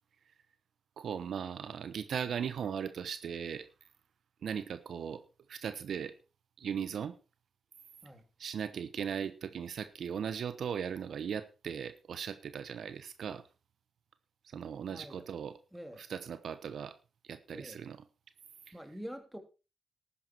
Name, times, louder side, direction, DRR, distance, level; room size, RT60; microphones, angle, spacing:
voice 1, 1.0-3.7 4.4-5.2 5.5-6.1 6.6-7.1 8.4-13.4 14.4-15.5 16.0-16.9 17.2-18.0, right 7 dB, 70° right, 12 dB, 1.0 m, -38 dB
voice 2, 14.9-15.3 15.7-16.1 17.5-17.8 18.7-19.4, equal, 5° right, 6 dB, 3.1 m, -46 dB
13.0 x 9.8 x 4.5 m, 0.31 s
cardioid pair, 60°, 0 cm